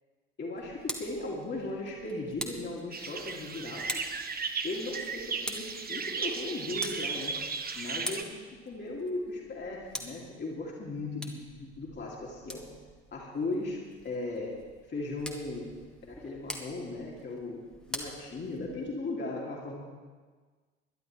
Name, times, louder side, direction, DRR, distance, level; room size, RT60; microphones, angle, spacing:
voice 1, 0.4-4.1 4.6-7.4 7.7-12.6 13.1-14.6 14.9-15.8 16.0-19.8, left 2 dB, 30° left, -3 dB, 2.6 m, -37 dB
Tick, 0.6-19.0, equal, ahead, 1.8 m, -45 dB
sound 1, 2.9-8.2, right 5 dB, 25° right, 1.2 m, -35 dB
22.0 x 11.5 x 3.3 m, 1.4 s
figure-of-eight pair, 55°, 36 cm